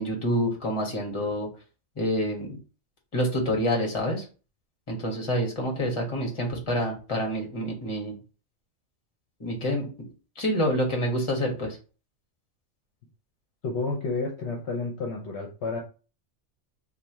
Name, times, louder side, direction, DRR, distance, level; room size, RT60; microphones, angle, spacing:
voice 1, 0.0-1.5 2.0-2.6 3.1-4.2 4.9-8.2 9.4-9.9 10.3-11.8, equal, 25° left, 0 dB, 1.2 m, -27 dB
voice 2, 13.6-15.8, left 3 dB, 65° left, 0 dB, 0.9 m, -30 dB
3.2 x 2.3 x 4.3 m, 0.34 s
omnidirectional pair, 1.3 m